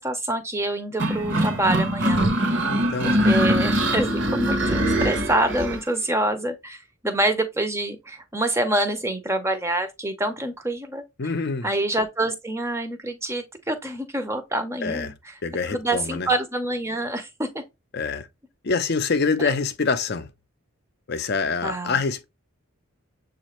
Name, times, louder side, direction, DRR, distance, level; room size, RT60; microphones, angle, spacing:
voice 1, 0.0-2.6 3.0-11.0 11.6-15.3 15.7-17.6 19.4-19.5 21.6-22.0, right 1 dB, 10° right, 0.6 m, -26 dB
sound 1, 1.0-5.8, right 1 dB, 55° right, 0.9 m, -22 dB
voice 2, 2.7-3.1 11.2-11.7 14.8-15.1 15.4-16.3 17.9-18.3 18.6-20.3 21.1-22.2, left 4 dB, 45° left, 0.6 m, -25 dB
7.2 x 2.5 x 3.0 m
head